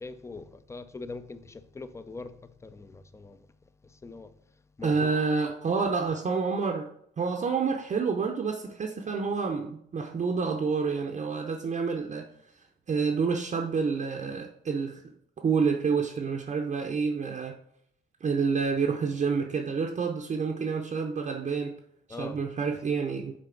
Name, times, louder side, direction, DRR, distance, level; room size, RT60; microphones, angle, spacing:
voice 1, 0.0-2.3 2.6-3.4 4.0-4.3 4.8-5.1 22.1-22.4, left 3 dB, 15° left, 0.4 m, -41 dB
voice 2, 4.8-6.9 7.2-12.3 12.9-15.0 15.4-17.6 18.2-21.7 22.1-23.3, right 5 dB, 35° right, 0.6 m, -28 dB
6.6 x 3.9 x 3.8 m
cardioid pair, 90°, 20 cm